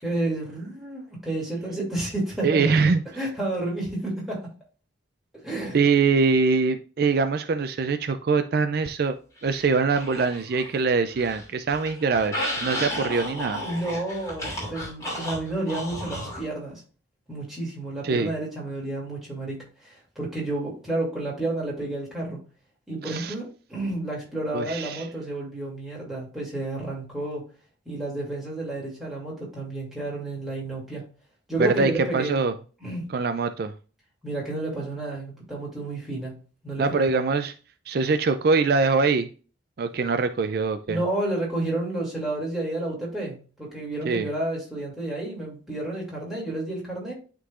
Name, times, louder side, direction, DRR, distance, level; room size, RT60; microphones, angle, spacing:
voice 1, 0.0-2.8 3.1-4.4 5.4-5.8 13.6-16.8 17.3-22.4 22.9-27.4 27.9-31.0 31.5-32.4 32.8-33.0 34.2-36.4 36.6-37.1 40.9-47.1, right 2 dB, ahead, -5 dB, 2.6 m, -31 dB
voice 2, 2.4-3.0 5.7-9.2 9.4-13.6 18.0-18.3 23.0-23.3 24.5-25.0 31.6-32.5 33.1-33.7 36.8-37.5 37.9-39.3 39.8-41.0 44.0-44.3, right 4 dB, 55° right, 9 dB, 0.4 m, -23 dB
sound 1, 9.4-10.8 11.1-16.4, left 1 dB, 20° left, 2.6 m, -33 dB
11.0 x 3.8 x 2.4 m, 0.38 s
head